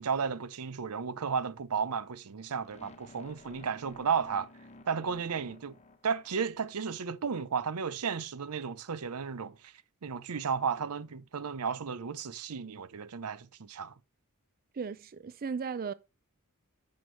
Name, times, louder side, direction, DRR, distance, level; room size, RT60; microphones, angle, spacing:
voice 1, 0.0-4.5 4.9-5.8 6.0-9.5 10.0-13.9, right 6 dB, 90° right, 0.6 m, -33 dB
sound 1, 2.6-6.7, left 2 dB, 30° left, 1.1 m, -54 dB
voice 2, 14.7-15.9, right 5 dB, 40° right, 0.4 m, -36 dB
10.5 x 6.5 x 3.2 m
head